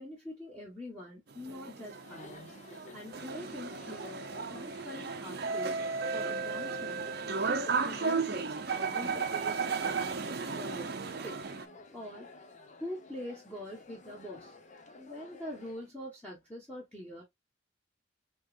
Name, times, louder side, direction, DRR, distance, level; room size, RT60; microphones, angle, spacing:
voice 1, 0.0-2.6 2.9-5.7 6.1-7.1 7.3-10.2 10.5-11.4 11.9-12.3 12.8-14.6 15.0-17.2, left 1 dB, 5° left, 1.4 m, -44 dB
sound 1, 1.3-11.7, right 5 dB, 55° right, 0.6 m, -34 dB
Chatter, 1.8-15.9, left 3 dB, 40° left, 0.9 m, -53 dB
6.4 x 3.1 x 2.5 m
head